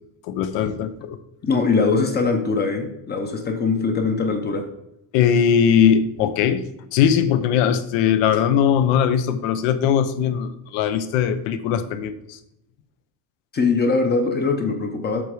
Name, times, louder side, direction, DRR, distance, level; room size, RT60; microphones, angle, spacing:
voice 1, 0.3-1.2 5.1-6.6 6.9-12.4, left 8 dB, 80° left, 11 dB, 1.0 m, -20 dB
voice 2, 1.4-4.7 13.5-15.2, left 4 dB, 20° left, 5 dB, 0.7 m, -21 dB
7.7 x 6.3 x 5.0 m, 0.81 s
cardioid pair, 175°, 45 cm